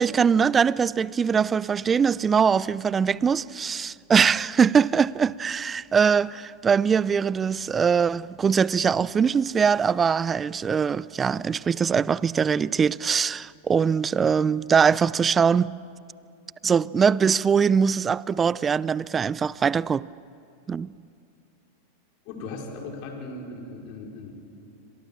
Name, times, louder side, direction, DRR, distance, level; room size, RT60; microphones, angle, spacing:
voice 1, 0.0-15.7 16.6-20.1 20.7-20.9, right 6 dB, 20° right, 0.6 m, -22 dB
voice 2, 22.2-24.3, left 3 dB, 50° left, 5.4 m, -38 dB
28.0 x 26.0 x 7.4 m
hypercardioid pair, 95°, 0 cm